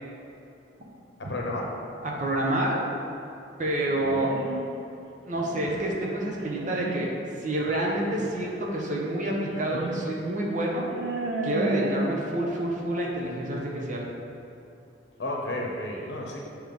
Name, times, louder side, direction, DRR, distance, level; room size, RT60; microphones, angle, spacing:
voice 1, 1.2-1.7 15.2-16.4, left 1 dB, 70° left, -1 dB, 0.8 m, -32 dB
voice 2, 2.0-2.8 3.6-4.4 5.2-7.1 7.4-10.9 11.4-14.1, right 1 dB, 45° right, -2 dB, 0.9 m, -28 dB
sound 1, 3.9-4.6 5.3-5.8 6.4-6.9 8.2-8.3 9.4-10.0 10.3-10.4 10.9-11.9, right 2 dB, 80° right, 0.7 m, -32 dB
7.2 x 3.1 x 5.2 m, 2.8 s
head